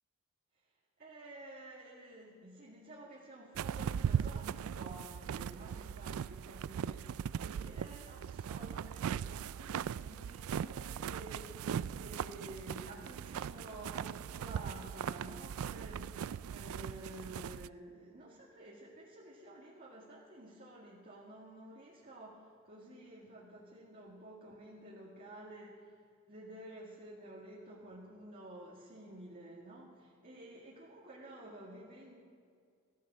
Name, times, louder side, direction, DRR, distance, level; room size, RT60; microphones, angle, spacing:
voice 1, 1.0-26.0 26.3-32.1, right 1 dB, 40° right, -6 dB, 2.1 m, -51 dB
sound 1, 3.5-17.7, right 8 dB, 70° right, 0.3 m, -39 dB
16.5 x 13.5 x 6.1 m, 2.2 s
head